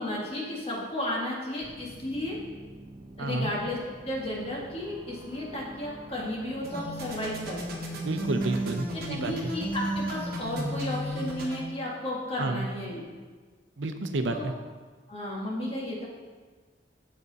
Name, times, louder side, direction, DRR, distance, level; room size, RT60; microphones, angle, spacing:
voice 1, 0.0-2.4 3.2-3.8 4.0-7.8 8.9-13.0 14.2-14.5 15.1-16.0, left 1 dB, 35° left, -3 dB, 1.7 m, -33 dB
sound 1, 1.6-11.1, right 1 dB, 20° right, 0.6 m, -47 dB
voice 2, 3.2-3.5 8.0-9.5 12.4-12.7 13.8-14.5, right 2 dB, 80° right, 7 dB, 0.6 m, -30 dB
sound 2, 6.6-11.6, right 1 dB, 55° right, 1.3 m, -34 dB
7.9 x 6.8 x 4.0 m, 1.4 s
head